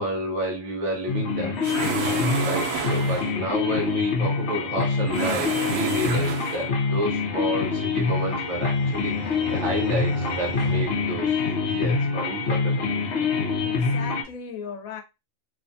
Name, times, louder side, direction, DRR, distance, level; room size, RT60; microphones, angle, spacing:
voice 1, 0.0-1.6 2.0-9.1 9.5-11.4 11.7-12.7, right 1 dB, 60° right, 1.3 m, -30 dB
sound 1, 1.1-14.2, left 4 dB, 60° left, 0.9 m, -25 dB
sound 2, 1.6-3.5 5.0-6.8, right 7 dB, 80° right, 1.1 m, -30 dB
sound 3, 7.4-12.0, right 1 dB, 35° right, 1.0 m, -39 dB
voice 2, 13.6-15.0, left 6 dB, 85° left, 1.0 m, -36 dB
3.0 x 2.2 x 2.6 m
omnidirectional pair, 1.4 m